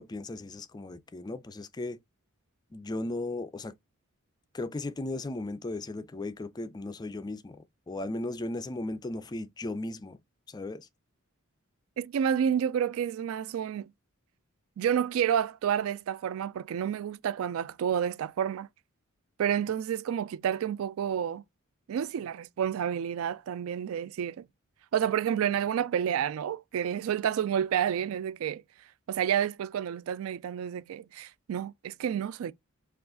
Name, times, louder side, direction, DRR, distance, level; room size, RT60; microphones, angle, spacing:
voice 1, 0.0-2.0 2.7-3.7 4.5-10.2 10.5-10.9, left 2 dB, 20° left, 0.3 m, -36 dB
voice 2, 12.0-13.9 14.8-18.7 19.4-21.4 21.9-24.5 24.9-28.6 29.1-32.5, right 9 dB, 75° right, 0.3 m, -29 dB
4.6 x 2.4 x 3.7 m
head